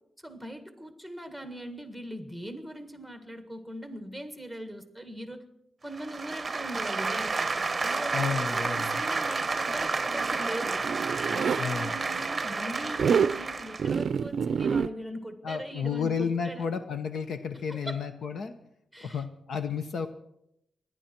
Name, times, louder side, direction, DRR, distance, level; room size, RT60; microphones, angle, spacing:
voice 1, 0.2-5.4 5.8-7.5 7.8-10.8 11.3-16.7 17.7-18.0 18.9-19.2, right 1 dB, 5° left, 7 dB, 1.7 m, -40 dB
sound 1, 5.9-14.0, right 4 dB, 30° right, 0.9 m, -30 dB
voice 2, 8.1-8.9 11.6-11.9 15.4-18.5 19.0-20.1, left 6 dB, 70° left, 9 dB, 1.0 m, -32 dB
Zipper (clothing), 10.0-11.6 12.9-13.4 13.8-14.9, right 6 dB, 65° right, 0.5 m, -27 dB
27.0 x 11.0 x 4.5 m, 0.80 s
wide cardioid pair, 115°, 0 cm